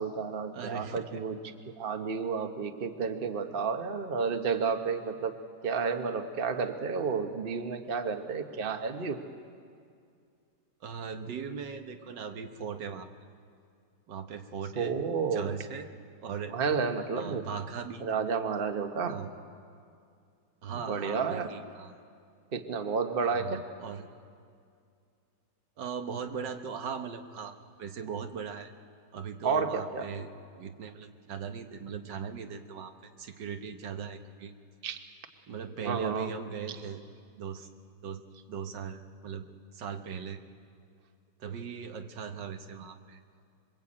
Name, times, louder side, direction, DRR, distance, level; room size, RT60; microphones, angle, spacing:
voice 1, 0.0-1.4 1.7-5.4 5.6-9.2 14.7-15.5 16.5-17.4 18.0-19.3 20.7-21.5 22.5-23.6 29.4-30.1 34.8-35.0 35.8-36.3 36.7-36.8, right 5 dB, 35° right, 7 dB, 1.2 m, -31 dB
voice 2, 0.5-1.2 10.8-13.1 14.1-14.9 15.3-15.9 16.2-16.5 17.2-18.1 19.0-19.3 20.6-21.9 23.2-24.1 25.8-28.7 29.1-30.3 30.6-34.5 35.5-37.0 37.4-37.7 38.0-39.5 39.7-40.4 41.4-43.2, right 6 dB, 80° right, 6 dB, 1.8 m, -39 dB
26.5 x 22.0 x 8.7 m, 2.3 s
omnidirectional pair, 1.9 m